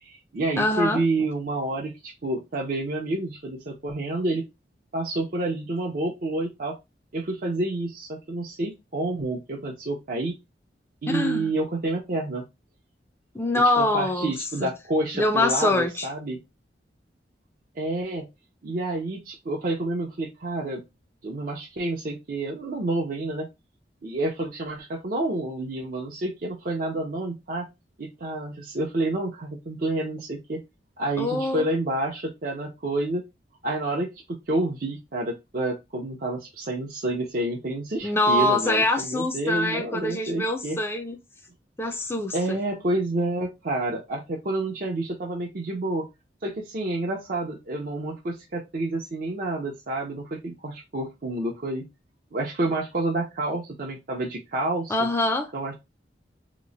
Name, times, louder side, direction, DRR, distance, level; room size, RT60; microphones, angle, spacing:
voice 1, 0.0-4.4 4.9-6.8 7.1-10.3 11.0-12.4 13.8-16.4 17.7-18.2 18.6-20.8 21.2-23.5 24.0-27.7 28.0-30.6 31.0-33.2 33.6-40.8 42.3-46.1 46.4-51.8 52.3-55.1 55.5-55.7, right 2 dB, 50° right, 0.6 m, -29 dB
voice 2, 0.6-1.0 11.1-11.5 13.3-14.3 14.6-14.7 15.1-16.1 31.2-31.7 38.0-41.2 41.8-42.6 54.9-55.5, left 2 dB, 15° left, 0.4 m, -24 dB
2.9 x 2.1 x 3.8 m
head